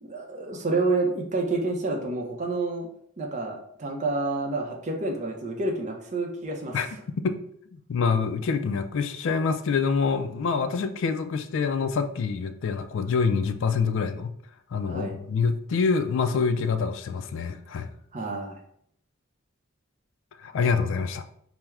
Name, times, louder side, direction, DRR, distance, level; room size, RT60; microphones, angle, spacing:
voice 1, 0.0-2.9 3.2-6.8 14.8-15.1 18.1-18.6, right 3 dB, 35° right, 0 dB, 0.5 m, -29 dB
voice 2, 7.7-14.3 14.7-17.9 20.4-21.2, left 5 dB, 65° left, 8 dB, 0.3 m, -26 dB
4.4 x 2.0 x 3.5 m, 0.68 s
head